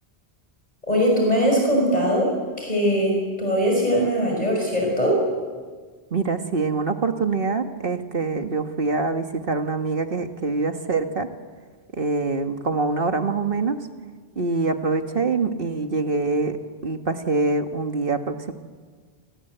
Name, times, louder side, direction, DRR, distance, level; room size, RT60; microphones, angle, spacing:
voice 1, 0.9-2.3 2.6-5.2, equal, 40° left, -1 dB, 5.9 m, -21 dB
voice 2, 6.1-11.3 11.9-13.9 14.4-16.6 16.8-18.5, right 3 dB, 60° right, 6 dB, 1.8 m, -24 dB
29.5 x 24.5 x 8.0 m, 1.5 s
omnidirectional pair, 1.1 m